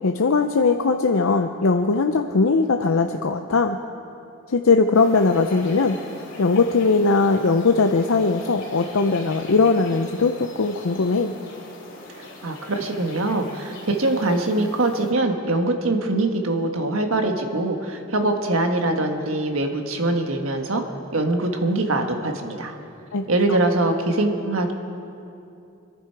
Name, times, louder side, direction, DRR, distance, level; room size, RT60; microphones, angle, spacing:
voice 1, 0.0-3.8 4.5-6.0 6.4-11.3 23.1-23.6, left 4 dB, 75° left, 5 dB, 0.6 m, -20 dB
sound 1, 4.9-15.1, left 2 dB, 55° left, 2.9 m, -41 dB
voice 2, 12.1-20.8 21.1-22.7 23.3-24.7, right 2 dB, 70° right, 4 dB, 1.5 m, -23 dB
26.0 x 11.0 x 4.7 m, 2.6 s
head